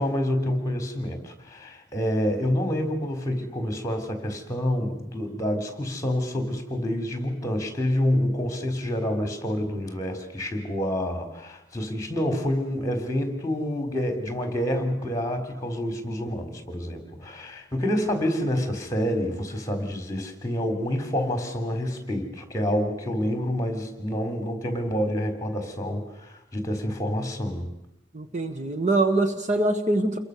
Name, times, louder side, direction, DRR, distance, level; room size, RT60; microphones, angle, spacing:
voice 1, 0.0-27.7, equal, 20° left, 7 dB, 4.1 m, -28 dB
voice 2, 28.2-30.2, right 2 dB, 40° right, 7 dB, 1.7 m, -23 dB
28.5 x 22.5 x 6.9 m, 0.86 s
head